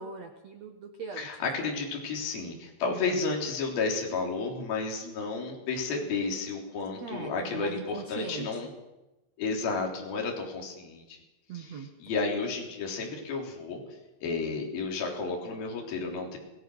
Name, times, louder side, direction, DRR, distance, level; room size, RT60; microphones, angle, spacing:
voice 1, 0.0-1.3 7.0-8.5 11.5-11.9, right 5 dB, 85° right, 5 dB, 1.4 m, -39 dB
voice 2, 1.2-8.7 9.4-11.2 11.5-13.8 14.2-16.4, left 4 dB, 50° left, 0 dB, 5.2 m, -32 dB
26.0 x 18.5 x 6.3 m, 1.0 s
omnidirectional pair, 5.5 m